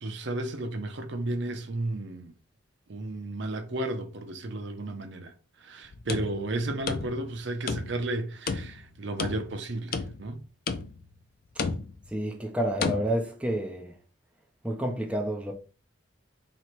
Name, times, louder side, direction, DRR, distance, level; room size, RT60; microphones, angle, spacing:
voice 1, 0.0-2.3 2.9-5.3 5.6-10.4, right 2 dB, 60° right, 0.6 m, -33 dB
sound 1, 5.9-7.4 7.7-8.1 8.5-9.6 9.9-10.4 10.7-11.1 11.6-12.1 12.8-13.0, left 4 dB, 45° left, 0.4 m, -32 dB
voice 2, 12.1-13.9 14.6-15.5, right 1 dB, 5° right, 0.6 m, -29 dB
3.0 x 3.0 x 4.4 m
head